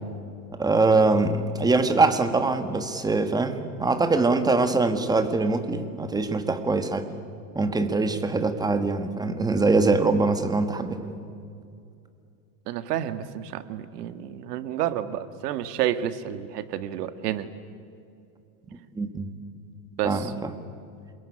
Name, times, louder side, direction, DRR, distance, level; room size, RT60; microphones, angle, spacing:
voice 1, 0.5-7.1 7.5-11.0 18.9-19.3 20.0-20.5, right 3 dB, 10° right, 8 dB, 1.5 m, -23 dB
voice 2, 12.7-17.5 20.0-20.3, right 11 dB, 80° right, 11 dB, 1.9 m, -30 dB
27.5 x 21.5 x 9.9 m, 2.5 s
supercardioid pair, 150°, 47 cm